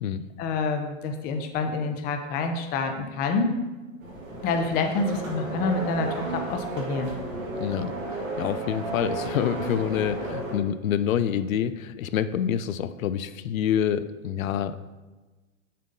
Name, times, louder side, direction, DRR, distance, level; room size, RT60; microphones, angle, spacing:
voice 1, 0.4-3.5 4.4-7.1, left 4 dB, 25° left, 5 dB, 0.6 m, -27 dB
sound 1, 4.0-10.5, right 2 dB, 80° right, 2.2 m, -33 dB
voice 2, 7.6-7.9 8.4-14.8, left 9 dB, 85° left, 13 dB, 0.5 m, -27 dB
6.5 x 3.7 x 5.3 m, 1.2 s
hypercardioid pair, 135°, 39 cm